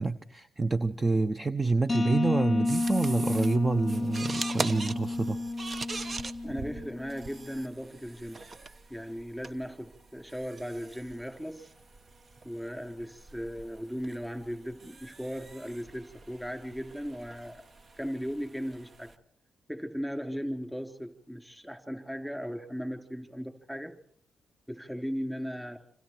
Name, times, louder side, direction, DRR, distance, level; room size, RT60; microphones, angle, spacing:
voice 1, 0.0-5.4, right 3 dB, 25° right, 10 dB, 1.0 m, -27 dB
sound 1, 1.9-7.5, left 2 dB, 25° left, 0.9 m, -31 dB
sound 2, 2.6-19.2, right 3 dB, 45° right, 1.2 m, -43 dB
voice 2, 6.4-8.4 8.9-11.7 12.4-17.6 18.0-19.1 19.7-23.9 24.7-25.8, equal, 5° right, 6 dB, 4.1 m, -37 dB
27.5 x 26.0 x 4.6 m, 0.62 s
supercardioid pair, 55°, 0 cm